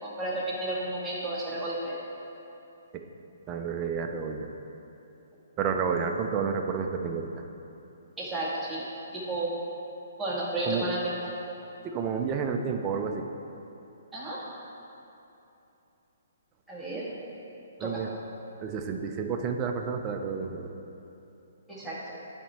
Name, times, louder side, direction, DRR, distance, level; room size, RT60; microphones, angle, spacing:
voice 1, 0.0-2.0 8.2-8.9 9.1-9.5 10.2-11.2 14.1-14.4 16.7-17.0 17.8-18.0 21.7-22.2, right 2 dB, 5° right, -8 dB, 1.7 m, -32 dB
voice 2, 3.5-4.5 5.6-7.3 10.6-10.9 11.8-13.2 17.8-18.1 18.6-20.7, right 6 dB, 25° right, 4 dB, 0.6 m, -30 dB
9.9 x 4.4 x 4.5 m, 2.9 s
hypercardioid pair, 145°, 0 cm